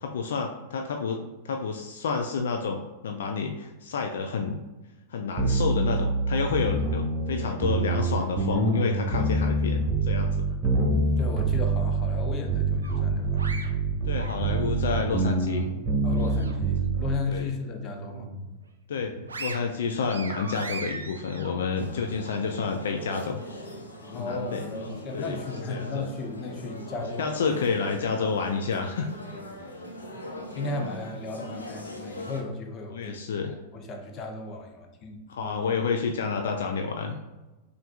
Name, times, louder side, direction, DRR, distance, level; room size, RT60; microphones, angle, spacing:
voice 1, 0.0-4.6 5.1-10.4 14.1-15.7 17.3-17.5 18.9-23.4 24.1-25.4 25.7-26.0 27.2-29.1 32.9-33.5 35.3-37.2, left 5 dB, 70° left, 4 dB, 0.3 m, -29 dB
sound 1, 5.4-17.2, right 3 dB, 35° right, 1.2 m, -25 dB
voice 2, 11.1-13.5 16.0-18.3 24.0-27.5 28.1-28.3 29.3-29.7 30.5-35.7 36.5-36.6, left 3 dB, 35° left, 3 dB, 0.7 m, -35 dB
sound 2, 12.8-14.9 15.3-16.8 17.1-17.3 17.7-18.5 18.9-22.4, right 3 dB, 85° right, 0.4 m, -40 dB
sound 3, 21.8-32.4, left 1 dB, 85° left, 0.9 m, -40 dB
5.7 x 2.6 x 2.4 m, 1.1 s
hypercardioid pair, 95°, 0 cm